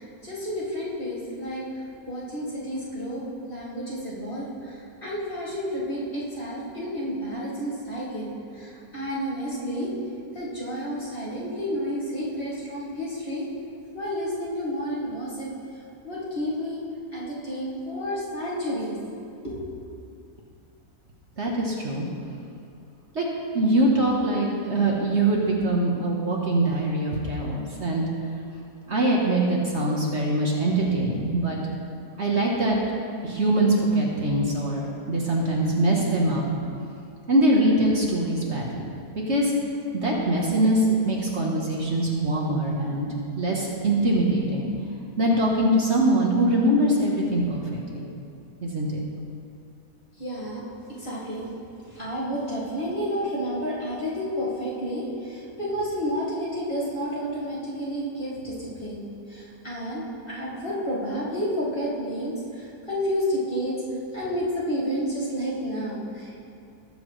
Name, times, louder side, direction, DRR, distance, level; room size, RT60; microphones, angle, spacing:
voice 1, 0.0-3.2 3.5-9.9 10.3-13.5 13.9-16.9 17.1-19.0 19.4-19.6 50.2-50.6 50.9-51.5 51.8-63.8 64.1-66.4, equal, 35° left, -8 dB, 2.6 m, -31 dB
voice 2, 21.4-22.0 23.1-23.3 23.5-28.0 28.9-31.6 32.2-32.8 33.2-36.4 37.3-39.5 39.9-43.1 43.3-44.7 45.2-48.1 48.6-49.0, right 1 dB, 50° right, -3 dB, 1.4 m, -23 dB
19.0 x 7.2 x 3.2 m, 2.5 s
omnidirectional pair, 1.6 m